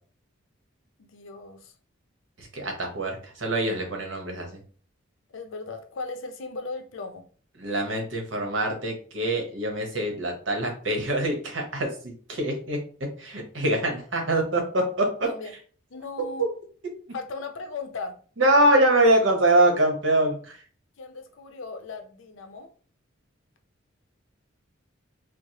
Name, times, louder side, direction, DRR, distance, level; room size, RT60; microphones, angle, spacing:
voice 1, 1.0-1.7 5.3-7.2 15.0-15.5 15.9-16.5 17.1-18.2 21.0-22.7, left 3 dB, 70° left, 0.6 m, -37 dB
voice 2, 2.4-4.6 7.6-12.8 13.2-15.3 16.2-16.5 18.4-20.6, right 1 dB, 65° right, 1.0 m, -24 dB
4.6 x 2.0 x 2.8 m
head